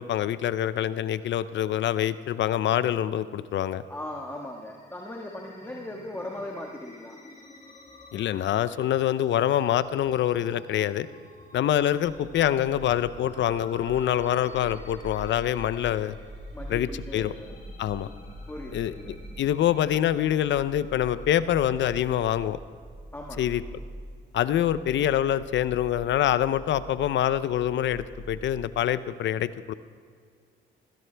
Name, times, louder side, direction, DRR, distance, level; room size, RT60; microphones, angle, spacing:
voice 1, 0.0-3.8 8.1-11.1 11.5-16.2 16.7-17.3 17.8-18.1 18.7-18.9 19.4-22.6 23.4-23.6 24.3-29.7, left 11 dB, 70° left, 15 dB, 0.6 m, -25 dB
voice 2, 3.9-7.2 16.5-17.5 18.5-19.1 23.1-23.6, left 1 dB, 10° left, 0 dB, 1.6 m, -38 dB
sound 1, 4.2-21.3, left 2 dB, 35° left, 3.8 m, -52 dB
sound 2, 12.0-28.7, equal, 25° right, 3.0 m, -44 dB
21.0 x 15.5 x 3.4 m, 2.1 s
cardioid pair, 90°, 20 cm